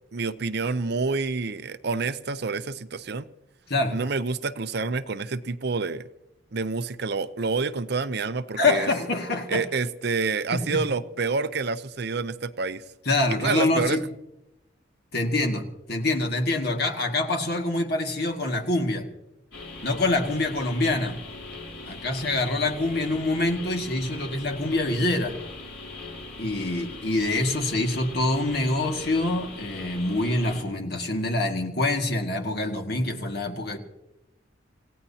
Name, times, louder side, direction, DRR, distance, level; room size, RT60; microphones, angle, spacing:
voice 1, 0.1-3.3 3.9-6.1 6.5-8.9 9.5-12.8 13.4-14.0, right 4 dB, 55° right, 13 dB, 0.6 m, -28 dB
voice 2, 8.6-9.6 10.5-10.8 13.1-14.0 15.1-19.1 19.8-21.2 21.8-25.4 26.4-33.8, left 2 dB, 55° left, 3 dB, 2.0 m, -25 dB
sound 1, 19.5-30.6, left 3 dB, 90° left, 5.7 m, -40 dB
27.5 x 16.5 x 2.8 m, 0.90 s
head